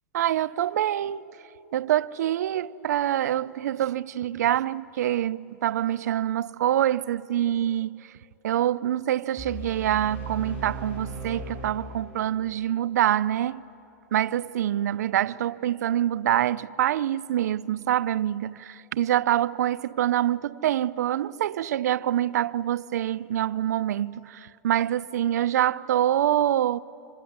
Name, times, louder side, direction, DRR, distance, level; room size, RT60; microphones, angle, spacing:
voice 1, 0.1-1.2 1.7-8.0 8.4-13.6 14.1-26.8, right 11 dB, 80° right, 0.6 m, -25 dB
sound 1, 9.4-12.4, right 3 dB, 20° left, 5.9 m, -37 dB
26.0 x 24.0 x 9.5 m
supercardioid pair, 160°, 9 cm